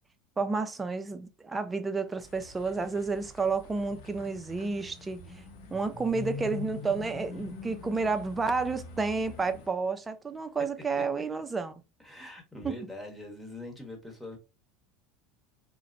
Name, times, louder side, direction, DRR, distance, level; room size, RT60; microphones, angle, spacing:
voice 1, 0.4-5.4 5.7-11.8 12.6-12.8, right 4 dB, 15° right, 0.4 m, -31 dB
sound 1, 2.2-9.7, left 4 dB, 75° left, 0.7 m, -44 dB
voice 2, 12.0-14.4, left 2 dB, ahead, 1.0 m, -43 dB
2.8 x 2.0 x 2.5 m
supercardioid pair, 110°, 0 cm